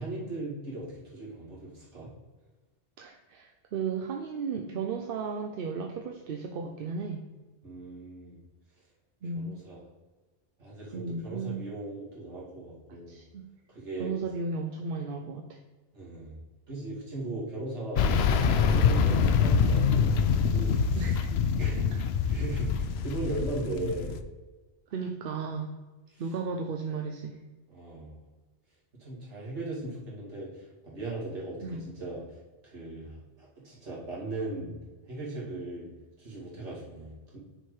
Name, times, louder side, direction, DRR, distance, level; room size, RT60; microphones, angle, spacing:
voice 1, 0.0-2.1 7.6-8.4 9.3-9.8 10.6-13.2 13.7-14.2 15.9-16.3 16.7-18.0 18.5-21.2 21.6-24.2 26.1-26.2 27.7-28.2 29.0-32.4 32.6-34.7 35.1-35.9 36.2-37.4, right 2 dB, 80° right, -6 dB, 2.7 m, -38 dB
voice 2, 3.0-7.3 9.2-9.6 10.9-11.6 13.1-13.4 14.0-15.6 19.1-19.4 21.0-21.3 24.9-25.7 26.2-27.4 31.6-31.9, right 4 dB, 60° right, 4 dB, 0.7 m, -34 dB
sound 1, 18.0-24.2, left 6 dB, 70° left, 0.8 m, -25 dB
6.4 x 4.5 x 4.8 m, 1.2 s
omnidirectional pair, 1.2 m